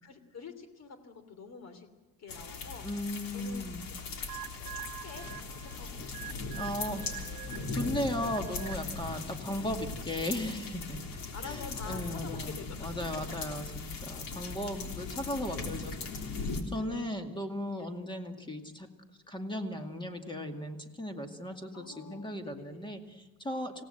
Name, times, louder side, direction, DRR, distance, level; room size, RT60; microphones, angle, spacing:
voice 1, 0.0-1.9 2.2-2.9 3.3-3.8 4.6-7.4 11.3-13.0 15.5-15.7 16.7-17.0 17.8-18.0 21.7-22.8 23.6-23.7, left 5 dB, 50° left, 10 dB, 3.1 m, -48 dB
sound 1, 2.3-16.6, left 4 dB, 75° left, 3.6 m, -39 dB
voice 2, 2.8-3.9 6.5-7.1 7.3-18.9 19.3-23.8, left 1 dB, 15° left, 5 dB, 2.2 m, -37 dB
sound 2, 4.3-9.0, right 12 dB, 60° right, 1.2 m, -45 dB
26.5 x 17.5 x 7.8 m, 1.2 s
cardioid pair, 145°, 35 cm